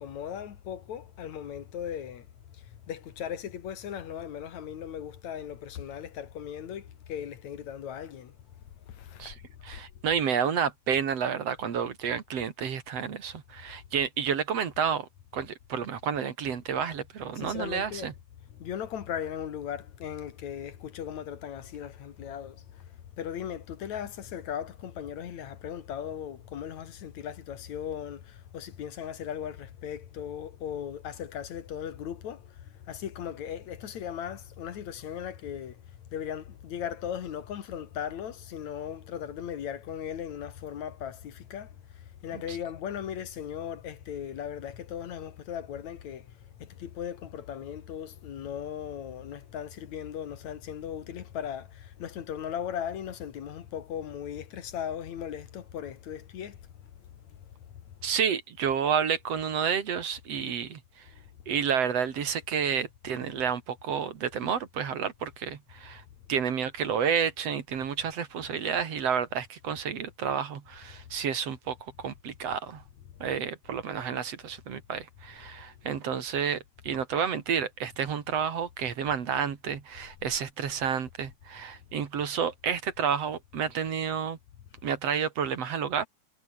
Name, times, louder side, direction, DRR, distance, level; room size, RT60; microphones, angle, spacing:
voice 1, 0.0-2.3 2.9-8.3 8.9-9.3 9.7-9.8 17.4-18.2 18.5-22.8 23.2-35.8 36.1-41.7 42.2-46.3 46.6-56.6, left 9 dB, 70° left, 3.0 m, -37 dB
voice 2, 9.2-18.1 42.3-42.6 58.0-61.1 61.5-66.0 66.3-72.8 73.2-84.4 84.8-86.1, right 7 dB, 55° right, 3.1 m, -30 dB
omnidirectional pair, 3.4 m